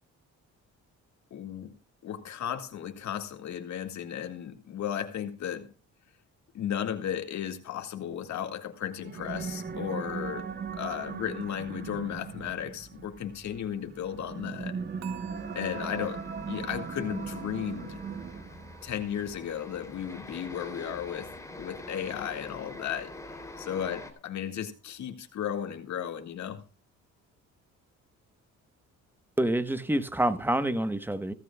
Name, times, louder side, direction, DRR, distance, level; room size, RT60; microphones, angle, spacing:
voice 1, 1.3-1.7 2.0-5.7 6.5-10.5 10.7-14.8 15.6-16.2 16.5-18.0 18.8-21.3 21.6-23.1 23.6-26.6, left 9 dB, 65° left, 2.1 m, -35 dB
sound 1, 8.9-18.8, right 5 dB, 35° right, 1.3 m, -38 dB
sound 2, 15.0-22.1 22.4-22.8 23.3-23.4, right 17 dB, 60° right, 1.6 m, -52 dB
sound 3, 15.3-24.1, left 2 dB, 10° left, 3.3 m, -46 dB
voice 2, 29.4-31.3, right 1 dB, 5° right, 1.2 m, -27 dB
16.5 x 14.5 x 2.4 m
cardioid pair, 90°, 30 cm